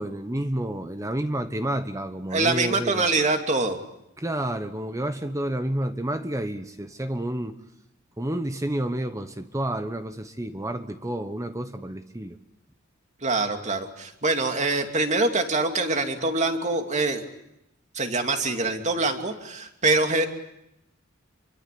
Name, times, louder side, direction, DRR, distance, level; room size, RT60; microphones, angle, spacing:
voice 1, 0.0-3.1 4.2-7.6 8.2-12.4, right 1 dB, 15° right, 9 dB, 1.1 m, -30 dB
voice 2, 2.3-3.8 13.2-17.2 17.9-20.3, right 3 dB, 35° right, 5 dB, 2.7 m, -24 dB
27.5 x 24.0 x 8.5 m, 0.83 s
head